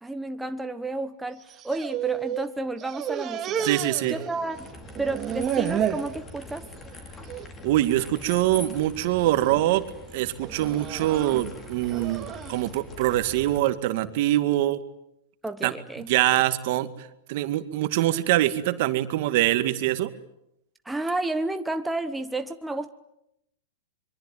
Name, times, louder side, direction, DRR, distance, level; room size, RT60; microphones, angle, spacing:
voice 1, 0.0-3.7 4.1-4.7 5.0-6.7 15.4-16.1 20.8-22.9, right 2 dB, 5° right, 7 dB, 1.1 m, -31 dB
sound 1, 1.4-2.5 2.8-4.7 4.9-6.1 6.6-6.9 7.3-7.5 8.3-8.7 9.2-9.6 10.4-12.6, right 9 dB, 30° right, 2.5 m, -31 dB
voice 2, 3.6-4.2 7.6-9.9 10.1-14.8 15.6-20.1, right 15 dB, 55° right, 10 dB, 2.1 m, -24 dB
sound 2, 4.5-13.6, left 2 dB, 20° left, 4.9 m, -43 dB
25.0 x 23.5 x 9.3 m, 0.81 s
hypercardioid pair, 135°, 0 cm